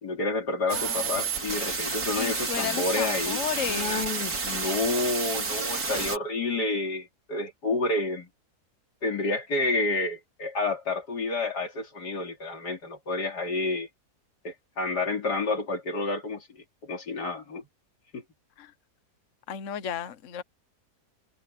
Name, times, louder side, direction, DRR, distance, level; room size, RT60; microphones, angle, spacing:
voice 1, 0.0-3.4 3.7-8.3 9.0-13.9 14.4-16.5 16.8-17.7 18.1-18.2, left 2 dB, 85° left, 3.7 m, -29 dB
voice 2, 0.7-1.1 2.2-4.2 18.6-18.7 19.5-20.4, left 9 dB, 55° left, 1.2 m, -34 dB
sound 1, 0.7-6.2, right 4 dB, 65° right, 3.2 m, -30 dB
omnidirectional pair, 1.7 m